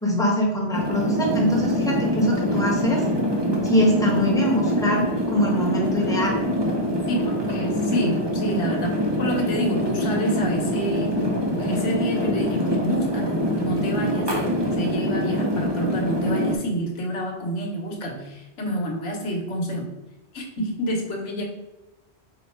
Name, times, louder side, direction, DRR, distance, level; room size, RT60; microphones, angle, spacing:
voice 1, 0.0-3.0 3.6-6.4, left 1 dB, 5° left, -4 dB, 0.9 m, -23 dB
sound 1, 0.7-16.6, equal, 30° right, 0.5 m, -24 dB
voice 2, 7.1-11.2 11.6-14.3 14.6-19.8 20.3-21.4, equal, 80° left, 0 dB, 1.2 m, -28 dB
4.6 x 2.2 x 4.3 m, 1.0 s
omnidirectional pair, 1.2 m